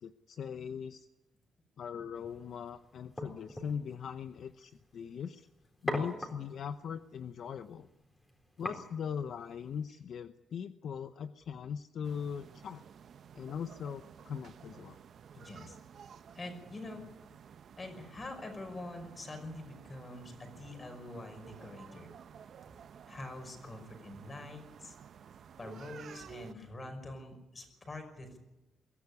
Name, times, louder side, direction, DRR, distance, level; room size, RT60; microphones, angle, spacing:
voice 1, 0.0-1.1 1.8-5.5 5.8-7.9 8.6-12.8 13.3-15.0, left 7 dB, 60° left, 11 dB, 0.7 m, -40 dB
sound 1, 2.2-9.9, left 1 dB, 10° left, 4.0 m, -44 dB
sound 2, 12.0-26.5, right 8 dB, 55° right, 0.8 m, -53 dB
voice 2, 15.3-15.8 16.3-17.1 17.8-22.1 23.1-25.0 25.6-28.4, left 2 dB, 25° left, 5 dB, 5.7 m, -45 dB
22.5 x 14.5 x 9.9 m, 1.0 s
cardioid pair, 140°, 0 cm